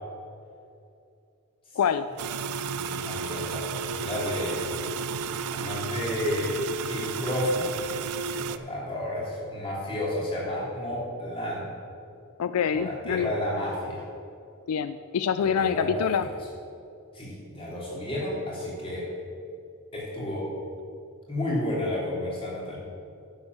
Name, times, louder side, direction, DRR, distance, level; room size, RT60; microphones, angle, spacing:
voice 1, 1.8-2.1 12.4-13.3 14.7-16.3, left 7 dB, 80° left, 12 dB, 0.4 m, -25 dB
sound 1, 2.2-8.6, right 5 dB, 90° right, 0.5 m, -32 dB
voice 2, 2.4-4.7 5.5-6.6 6.9-7.7 8.3-11.7 12.7-14.0 15.4-16.3 17.1-19.1 19.9-20.5 21.3-22.8, left 1 dB, 25° left, -5 dB, 3.1 m, -31 dB
11.0 x 7.3 x 6.0 m, 2.5 s
head